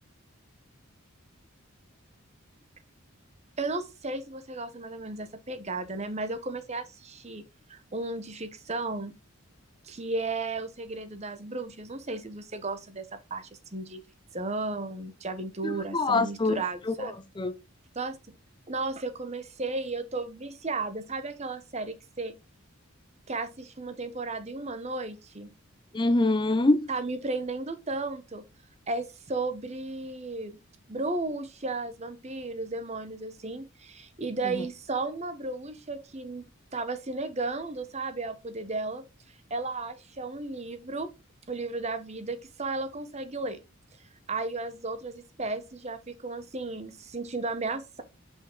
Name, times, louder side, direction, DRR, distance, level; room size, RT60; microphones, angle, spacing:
voice 1, 3.6-7.4 7.7-9.2 9.8-14.0 14.3-17.1 17.9-18.4 18.7-22.3 23.3-25.5 26.9-28.4 28.9-30.6 30.9-36.4 36.7-39.0 39.5-41.1 41.5-43.6 44.3-48.0, right 3 dB, 30° right, 1.0 m, -34 dB
voice 2, 15.6-17.5 25.9-26.9 34.4-34.6, left 2 dB, 20° left, 0.5 m, -26 dB
6.2 x 5.6 x 3.8 m
head